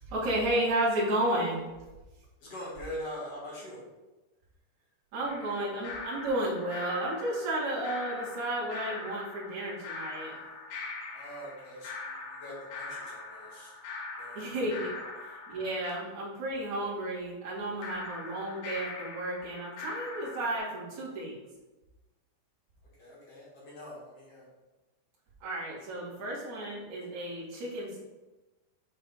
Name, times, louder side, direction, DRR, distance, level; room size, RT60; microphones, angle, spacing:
voice 1, 0.1-1.6 5.1-10.4 14.3-14.9 15.5-21.4 25.4-28.0, right 1 dB, 45° right, -8 dB, 3.1 m, -32 dB
voice 2, 2.4-3.8 8.4-8.6 11.1-13.7 14.2-14.6 15.0-15.1 23.0-24.5, equal, 55° left, -6 dB, 1.8 m, -43 dB
sound 1, 5.3-15.9 17.8-20.6, left 3 dB, 75° left, 3.3 m, -42 dB
8.7 x 4.4 x 3.9 m, 1.1 s
omnidirectional pair, 5.4 m